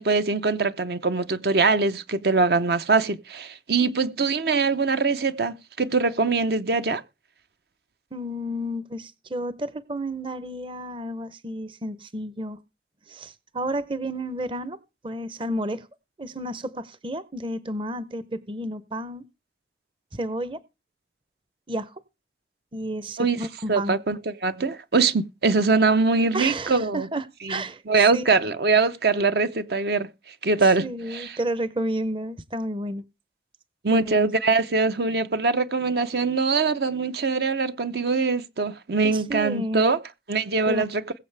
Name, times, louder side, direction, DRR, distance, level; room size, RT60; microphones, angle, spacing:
voice 1, 0.0-7.0 23.2-23.4 23.7-27.1 27.5-27.6 27.9-30.1 30.4-31.3 33.8-40.0 40.3-41.0, right 4 dB, 65° right, 0.8 m, -23 dB
voice 2, 8.1-12.6 13.1-14.8 15.0-15.9 16.2-19.3 20.1-20.6 21.7-22.0 22.7-24.0 26.3-28.5 30.6-33.0 33.9-34.3 39.0-40.0 40.7-40.9, right 1 dB, 30° right, 0.7 m, -31 dB
21.5 x 7.3 x 3.3 m
head